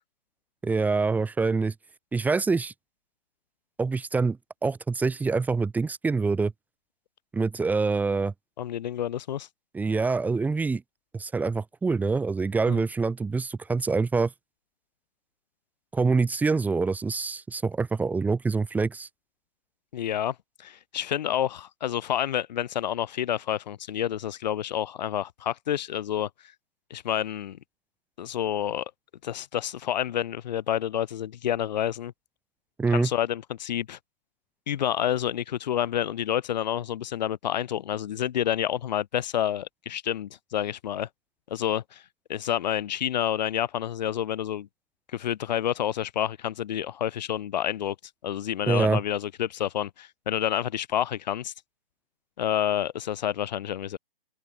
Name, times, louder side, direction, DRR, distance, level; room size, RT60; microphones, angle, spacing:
voice 1, 0.6-1.7 2.1-2.7 3.8-6.5 7.3-8.3 9.7-10.8 11.1-14.3 15.9-19.1 32.8-33.1 48.7-49.0, right 4 dB, 5° right, 1.9 m, -25 dB
voice 2, 8.6-9.5 12.7-12.8 19.9-26.3 26.9-27.6 28.2-28.8 29.2-32.1 32.9-34.0 34.7-41.1 41.5-42.0 42.3-44.7 45.1-47.9 48.2-51.5 52.4-54.0, left 10 dB, 45° left, 4.8 m, -29 dB
open air
figure-of-eight pair, 135°, 30 cm